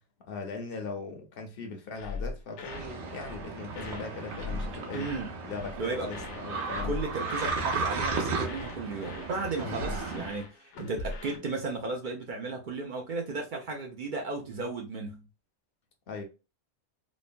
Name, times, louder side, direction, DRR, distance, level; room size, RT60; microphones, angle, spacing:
voice 1, 0.2-5.1 5.4-7.0 9.6-10.0 16.1-16.3, left 4 dB, 60° left, 0.8 m, -39 dB
sound 1, 2.0-2.9 3.1-3.4 3.7-5.2 5.5-5.8 6.1-7.6 7.9-8.2 8.4-11.4, left 3 dB, 90° left, 1.0 m, -40 dB
sound 2, 2.7-10.3, right 4 dB, 85° right, 1.1 m, -35 dB
voice 2, 4.9-5.3 5.8-6.1 6.8-15.2, right 3 dB, 55° right, 0.6 m, -34 dB
3.0 x 2.1 x 2.5 m
omnidirectional pair, 1.1 m